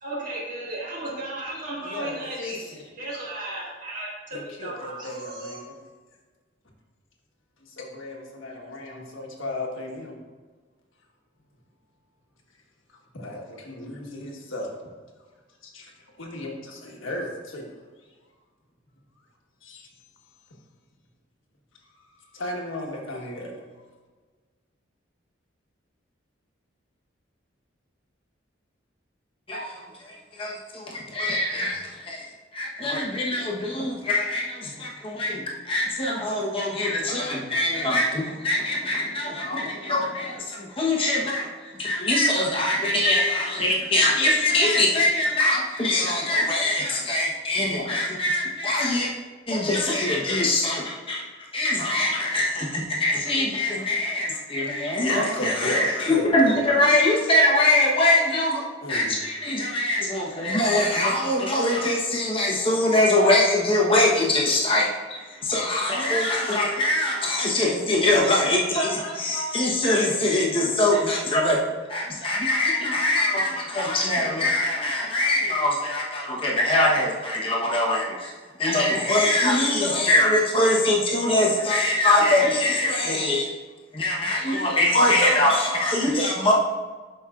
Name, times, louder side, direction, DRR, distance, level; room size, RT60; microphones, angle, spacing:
voice 1, 0.0-2.7 3.0-5.6, right 2 dB, 40° right, -5 dB, 2.0 m, -35 dB
voice 2, 1.8-2.8 4.3-5.7 7.7-10.2 13.1-14.8 15.6-15.9 16.2-17.7 19.6-19.9 21.9-23.6 55.1-56.6 58.8-59.1, left 1 dB, 80° left, -1 dB, 1.4 m, -35 dB
voice 3, 29.5-49.1 49.5-51.2 51.5-71.6 71.9-83.5 83.9-86.5, left 1 dB, 25° left, -3 dB, 1.1 m, -23 dB
12.0 x 5.3 x 2.5 m, 1.4 s
head